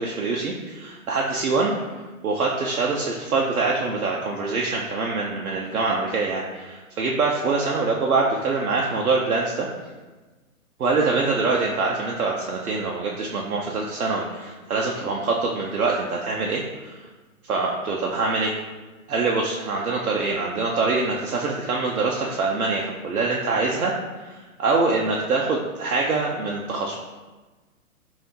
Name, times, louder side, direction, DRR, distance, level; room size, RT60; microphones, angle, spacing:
voice 1, 0.0-1.7 2.2-9.7 10.8-17.0 17.5-18.5 19.1-23.9 24.2-27.0, right 3 dB, 85° right, -2 dB, 0.6 m, -24 dB
5.1 x 2.7 x 2.8 m, 1.3 s
hypercardioid pair, 130°, 42 cm